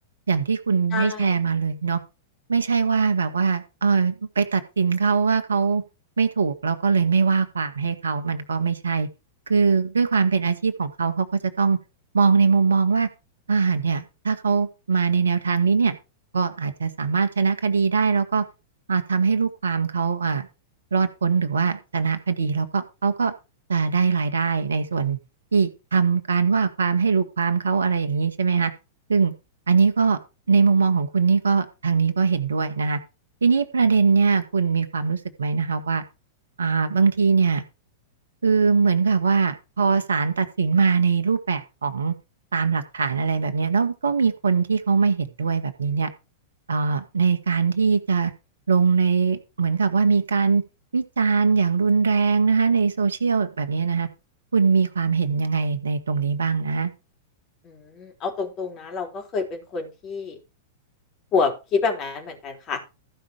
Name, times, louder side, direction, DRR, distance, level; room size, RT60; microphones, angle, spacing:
voice 1, 0.3-2.0 2.5-5.8 6.2-9.1 9.5-11.8 12.1-13.1 13.5-16.0 16.3-18.4 18.9-20.5 20.9-23.3 23.7-25.2 25.5-28.7 29.1-29.3 29.7-30.2 30.5-33.0 33.4-36.0 36.6-37.6 38.4-42.1 42.5-46.1 46.7-48.3 48.7-50.6 50.9-54.1 54.5-56.9, right 5 dB, 70° right, 10 dB, 1.6 m, -21 dB
voice 2, 0.9-1.3 57.6-60.4 61.3-62.8, left 4 dB, 30° left, 3 dB, 4.1 m, -27 dB
14.5 x 5.7 x 5.0 m, 0.28 s
figure-of-eight pair, 100°, 0 cm